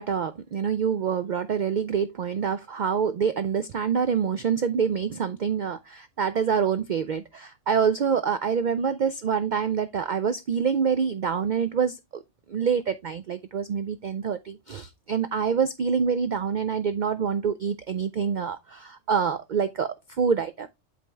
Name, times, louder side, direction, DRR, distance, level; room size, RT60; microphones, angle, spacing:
voice 1, 0.0-12.2 12.5-20.7, right 6 dB, 85° right, 0.4 m, -26 dB
8.2 x 4.3 x 3.4 m
omnidirectional pair, 1.4 m